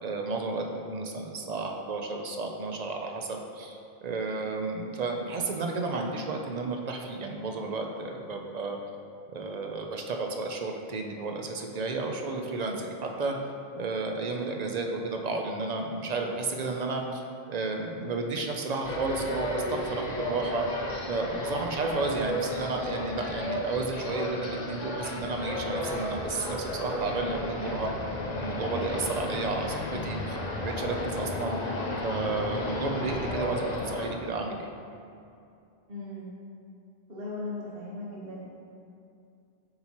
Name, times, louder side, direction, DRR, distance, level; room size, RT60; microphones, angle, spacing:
voice 1, 0.0-8.8 9.3-13.4 13.8-17.2 17.5-20.7 21.1-27.9 28.4-31.6 32.0-34.7, right 3 dB, 50° right, 2 dB, 0.5 m, -32 dB
sound 1, 18.8-34.1, left 1 dB, 45° left, 0.7 m, -33 dB
voice 2, 35.9-36.3 37.1-38.5, left 2 dB, 65° right, -5 dB, 1.3 m, -37 dB
7.6 x 4.3 x 2.9 m, 2.5 s
omnidirectional pair, 1.0 m